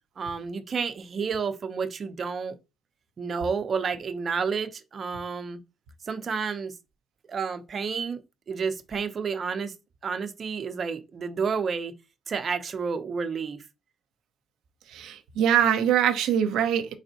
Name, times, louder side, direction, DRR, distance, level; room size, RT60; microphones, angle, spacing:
voice 1, 0.2-2.5 3.2-5.6 6.0-6.7 7.3-8.2 8.5-9.7 10.0-11.9 12.3-13.6, right 5 dB, 45° right, 0.6 m, -30 dB
voice 2, 14.9-16.9, right 9 dB, 85° right, 0.6 m, -23 dB
4.1 x 3.4 x 2.8 m
cardioid pair, 90°, 0 cm